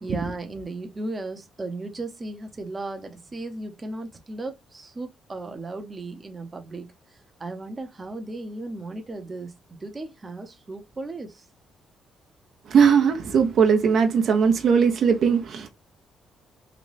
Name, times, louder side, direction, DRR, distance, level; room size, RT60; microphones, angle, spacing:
voice 1, 0.0-6.9 7.4-9.5 9.8-11.4, right 2 dB, 25° right, 0.7 m, -35 dB
voice 2, 12.7-15.7, right 6 dB, 65° right, 0.7 m, -19 dB
3.9 x 2.2 x 3.2 m
cardioid pair, 90°, 0 cm